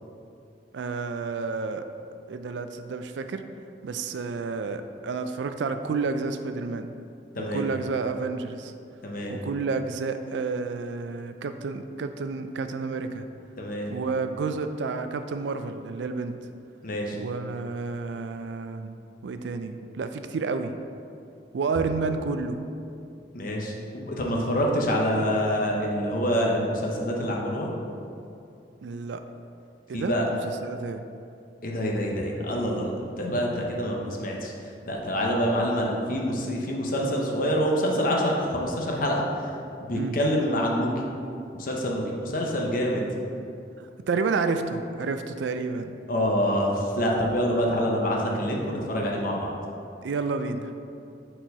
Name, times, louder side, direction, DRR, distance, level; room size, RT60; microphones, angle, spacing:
voice 1, 0.7-1.9 2.3-3.4 3.8-7.0 7.4-8.7 9.3-13.3 13.9-16.3 17.1-18.9 19.2-20.8 21.5-22.6 28.8-29.2 29.9-30.1 30.4-31.0 39.9-40.1 44.1-46.0 50.0-50.7, right 4 dB, 80° right, 8 dB, 0.4 m, -30 dB
voice 2, 9.0-9.4 13.6-13.9 16.8-17.2 23.3-27.7 29.9-30.2 31.6-34.5 34.9-39.2 39.8-40.9 41.6-43.0 46.1-49.5, equal, 50° left, -1 dB, 0.8 m, -26 dB
4.5 x 4.4 x 5.2 m, 2.5 s
head